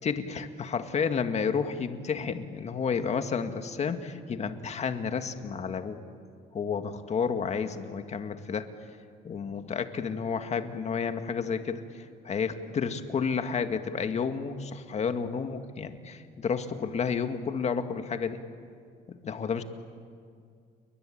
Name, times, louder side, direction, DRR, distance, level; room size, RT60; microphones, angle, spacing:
voice 1, 0.0-6.0 6.5-8.7 9.2-18.4 19.1-19.6, left 6 dB, 40° left, 7 dB, 2.0 m, -31 dB
29.5 x 22.5 x 8.8 m, 2.3 s
cardioid pair, 110°, 17 cm